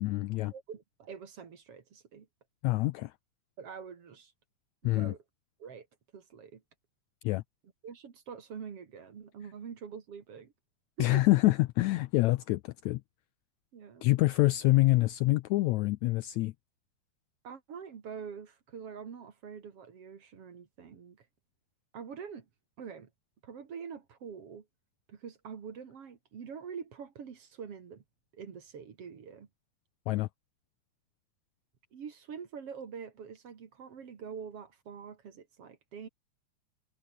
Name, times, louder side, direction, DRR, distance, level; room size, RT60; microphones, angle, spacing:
voice 1, 0.0-0.5 2.6-3.1 4.8-5.1 7.2-7.4 11.0-13.0 14.0-16.5 30.1-30.3, left 19 dB, 80° left, 1.7 m, -26 dB
voice 2, 0.5-2.3 3.6-4.3 4.8-5.2 5.6-5.9 6.1-6.6 7.8-10.5 11.0-11.3 13.7-14.1 17.4-21.3 21.9-22.5 22.8-23.1 23.4-24.7 25.1-28.0 28.3-29.5 31.9-36.1, right 6 dB, 50° right, 2.9 m, -45 dB
omnidirectional pair, 3.7 m